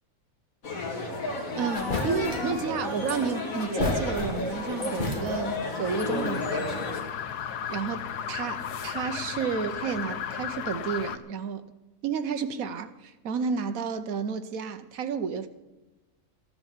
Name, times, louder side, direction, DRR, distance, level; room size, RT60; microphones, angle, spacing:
sound 1, 0.6-7.0, left 2 dB, 60° left, 2.4 m, -32 dB
voice 1, 1.1-6.8 7.7-11.7 12.0-15.5, right 6 dB, 70° right, 1.3 m, -31 dB
sound 2, 1.3-1.4 1.7-2.6 3.6-4.6 4.9-5.6, left 2 dB, 35° left, 1.6 m, -32 dB
sound 3, 5.8-11.2, left 8 dB, 90° left, 1.3 m, -35 dB
14.0 x 9.5 x 7.3 m
omnidirectional pair, 1.6 m